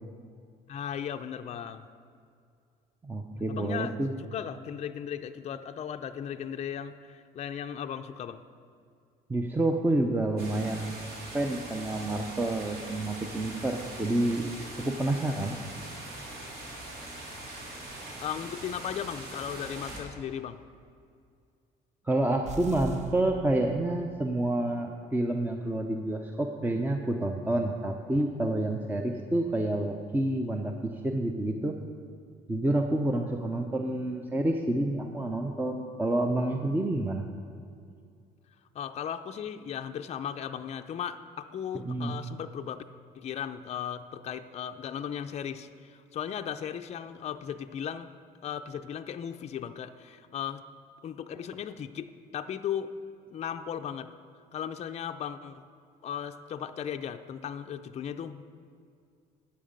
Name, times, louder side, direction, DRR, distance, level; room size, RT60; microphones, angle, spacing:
voice 1, 0.7-1.9 3.5-8.4 18.0-20.6 38.7-42.8 43.1-48.1 48.4-50.7 51.0-52.9 53.3-54.1 54.5-55.6 56.0-58.4, left 8 dB, 40° left, 8 dB, 0.5 m, -36 dB
voice 2, 3.0-4.1 9.3-11.0 11.3-14.5 14.8-15.6 22.0-31.8 32.5-37.2 41.8-42.1, right 1 dB, 10° right, 4 dB, 0.6 m, -28 dB
sound 1, 10.4-20.0, right 2 dB, 65° right, 2.9 m, -42 dB
sound 2, 22.4-24.3, right 1 dB, 45° right, 1.0 m, -42 dB
11.5 x 8.7 x 5.2 m, 2.3 s
cardioid pair, 110°, 17 cm